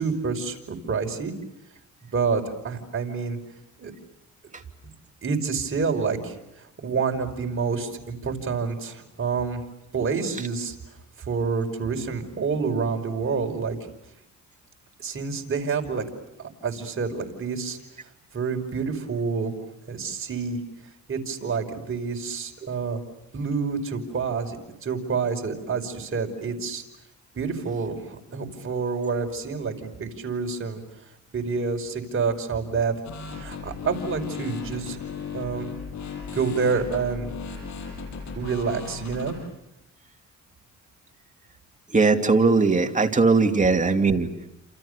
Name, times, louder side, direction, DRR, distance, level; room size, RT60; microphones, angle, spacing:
voice 1, 0.0-1.3 2.0-3.4 3.8-3.9 5.2-9.6 9.9-10.8 11.2-13.8 15.0-16.0 16.4-17.8 18.3-19.5 19.9-20.6 21.1-23.0 23.3-26.8 27.3-29.7 30.0-30.8 31.3-32.9 33.4-35.0 35.3-35.7 36.3-37.3 38.4-39.4, right 5 dB, 45° right, 4 dB, 5.5 m, -28 dB
sound 1, 33.0-39.3, left 5 dB, 65° left, 7.2 m, -36 dB
voice 2, 41.9-44.5, right 4 dB, 25° right, 5 dB, 2.7 m, -20 dB
29.5 x 28.0 x 6.8 m, 0.86 s
cardioid pair, 90°, 30 cm